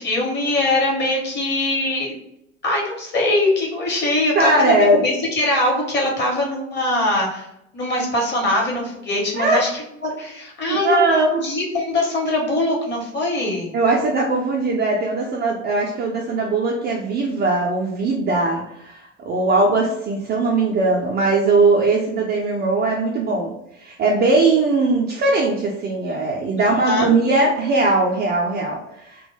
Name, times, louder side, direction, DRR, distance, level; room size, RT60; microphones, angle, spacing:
voice 1, 0.0-2.1 2.6-7.5 7.7-11.0 11.4-13.7 26.6-27.0, left 2 dB, 30° left, -2 dB, 1.0 m, -22 dB
voice 2, 4.3-5.0 9.3-9.6 10.7-11.4 13.7-29.2, right 3 dB, 25° right, -2 dB, 0.4 m, -20 dB
2.2 x 2.1 x 3.1 m, 0.81 s
figure-of-eight pair, 65°, 39 cm